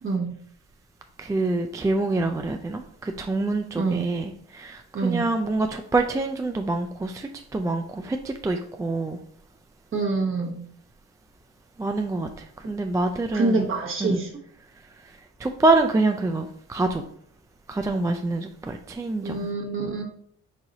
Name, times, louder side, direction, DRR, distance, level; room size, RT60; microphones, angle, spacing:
voice 1, 0.0-0.3 3.8-4.1 4.9-5.3 9.9-10.6 13.3-14.3 19.2-20.0, right 3 dB, 45° right, 1.2 m, -26 dB
voice 2, 1.2-9.2 11.8-13.6 14.0-14.1 15.4-17.0 17.7-19.4, right 2 dB, 10° right, 0.3 m, -26 dB
4.8 x 2.7 x 3.8 m
cardioid pair, 90°, 30 cm